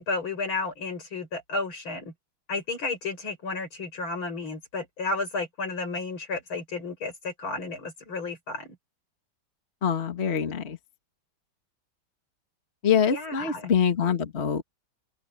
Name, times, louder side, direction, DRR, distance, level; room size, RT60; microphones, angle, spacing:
voice 1, 0.0-2.1 2.5-8.8 13.1-13.7, left 3 dB, 80° left, 7.2 m, -32 dB
voice 2, 9.8-10.8 12.8-14.6, left 7 dB, 35° left, 1.9 m, -24 dB
open air
omnidirectional pair, 2.2 m